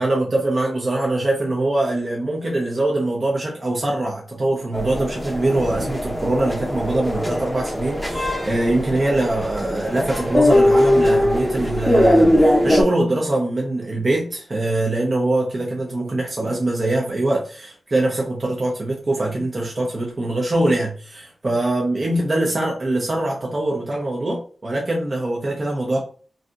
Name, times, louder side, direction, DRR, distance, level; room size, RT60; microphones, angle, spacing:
voice 1, 0.0-26.0, right 2 dB, 40° right, -2 dB, 0.7 m, -23 dB
sound 1, 4.7-12.8, left 1 dB, 5° left, 0.7 m, -20 dB
3.2 x 2.7 x 2.5 m, 0.41 s
wide cardioid pair, 85°, 0 cm